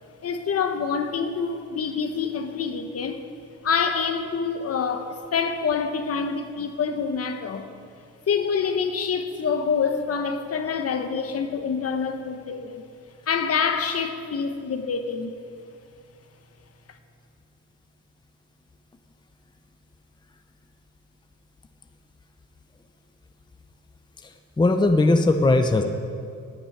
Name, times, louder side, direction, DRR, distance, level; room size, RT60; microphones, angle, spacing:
voice 1, 0.2-3.2 3.6-7.7 8.3-12.8 13.3-15.3, left 6 dB, 50° left, 7 dB, 1.1 m, -26 dB
voice 2, 24.6-25.8, left 2 dB, 15° left, 7 dB, 0.8 m, -18 dB
11.5 x 7.2 x 9.2 m, 2.4 s
cardioid pair, 90°, 30 cm